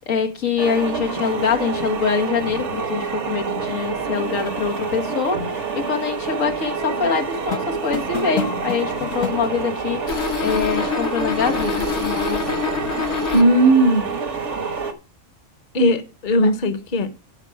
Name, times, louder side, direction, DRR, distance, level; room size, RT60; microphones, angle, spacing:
voice 1, 0.0-12.4 16.4-16.5, left 5 dB, 90° left, 1.8 m, -24 dB
sound 1, 0.6-14.9, right 5 dB, 65° right, 1.5 m, -27 dB
sound 2, 7.4-9.6 10.1-13.4, left 8 dB, 60° left, 1.2 m, -26 dB
voice 2, 13.3-14.0 15.7-17.3, right 1 dB, 40° left, 1.1 m, -17 dB
12.0 x 5.2 x 6.0 m
omnidirectional pair, 1.3 m